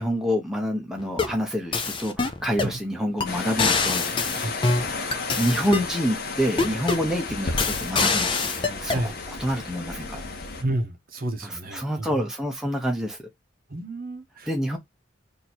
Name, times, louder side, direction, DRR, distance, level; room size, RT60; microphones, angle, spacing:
voice 1, 0.0-4.1 4.9-10.3 11.4-13.2 14.5-14.8, equal, 5° right, 0.8 m, -27 dB
sound 1, 1.0-1.4 1.7-2.8 3.2-3.3 3.6-5.9 6.6-7.1 7.6-9.0, left 4 dB, 25° left, 0.5 m, -25 dB
sound 2, 3.3-10.6, left 3 dB, 50° left, 0.9 m, -33 dB
voice 2, 10.6-12.1 13.7-14.5, right 1 dB, 45° right, 0.8 m, -30 dB
3.0 x 2.7 x 4.2 m
head